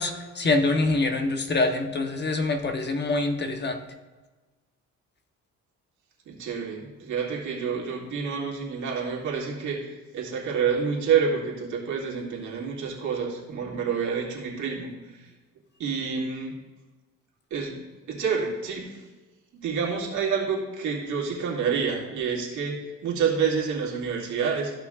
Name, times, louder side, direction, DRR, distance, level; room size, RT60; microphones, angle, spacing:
voice 1, 0.0-3.8, left 3 dB, 35° left, 5 dB, 1.0 m, -25 dB
voice 2, 6.3-15.2 15.8-16.5 17.5-17.7 18.1-18.9 19.5-22.8 23.0-24.7, right 6 dB, 75° right, -3 dB, 2.3 m, -28 dB
14.0 x 6.0 x 2.4 m, 1.2 s
cardioid pair, 90°, 30 cm